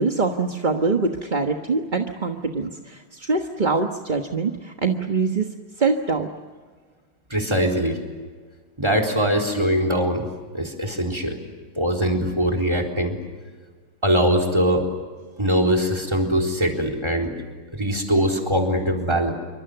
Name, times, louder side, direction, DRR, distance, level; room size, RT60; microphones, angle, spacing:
voice 1, 0.0-5.4 5.8-6.3, right 4 dB, 25° right, 3 dB, 1.2 m, -24 dB
voice 2, 7.3-8.0 8.8-10.3 10.5-11.4 11.7-13.2 14.0-14.9 15.4-17.3 17.7-19.3, equal, 10° right, 5 dB, 4.0 m, -22 dB
27.5 x 24.5 x 8.0 m, 1.5 s
omnidirectional pair, 2.4 m